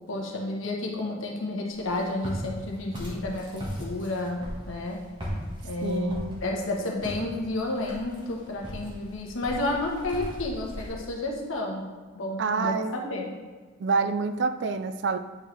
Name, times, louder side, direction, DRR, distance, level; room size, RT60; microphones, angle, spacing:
voice 1, 0.1-5.0 5.6-11.9 12.1-13.3, left 2 dB, 75° left, -1 dB, 1.2 m, -31 dB
Walk footsteps, 1.7-10.9, equal, 25° right, 1.5 m, -38 dB
voice 2, 5.8-6.4 12.4-13.0 13.8-15.2, right 4 dB, 55° right, 10 dB, 0.4 m, -27 dB
8.4 x 5.0 x 3.3 m, 1.4 s
head